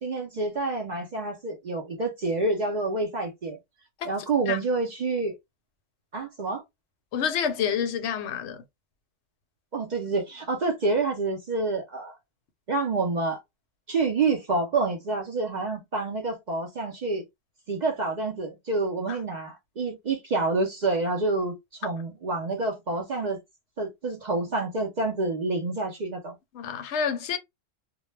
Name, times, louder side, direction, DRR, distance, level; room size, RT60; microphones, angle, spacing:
voice 1, 0.0-3.6 4.0-5.4 6.1-6.6 9.7-12.2 12.7-13.4 13.9-17.2 17.7-23.4 23.8-26.4, right 3 dB, 60° right, 0.5 m, -28 dB
voice 2, 7.1-8.6 26.5-27.4, left 7 dB, 65° left, 0.8 m, -28 dB
2.2 x 2.1 x 3.1 m
omnidirectional pair, 1.3 m